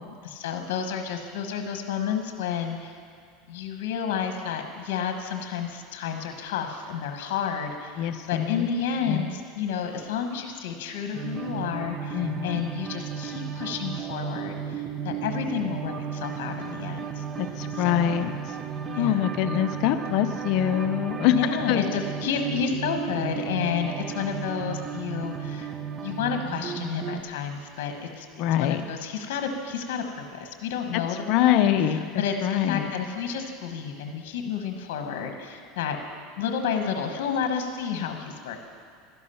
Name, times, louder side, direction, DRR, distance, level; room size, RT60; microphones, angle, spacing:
voice 1, 0.2-3.0 3.5-17.2 17.7-18.3 18.9-19.4 21.3-25.7 26.0-36.0 36.4-38.6, left 7 dB, 75° left, 5 dB, 1.1 m, -31 dB
voice 2, 8.0-8.7 9.1-9.2 12.1-12.6 17.4-18.3 18.9-21.3 21.7-21.9 28.4-28.8 31.3-32.0 32.4-32.9, left 11 dB, 55° left, 9 dB, 0.6 m, -24 dB
sound 1, 11.1-27.2, right 7 dB, 30° right, 0.7 m, -34 dB
12.0 x 11.0 x 5.6 m, 2.2 s
supercardioid pair, 130°, 0 cm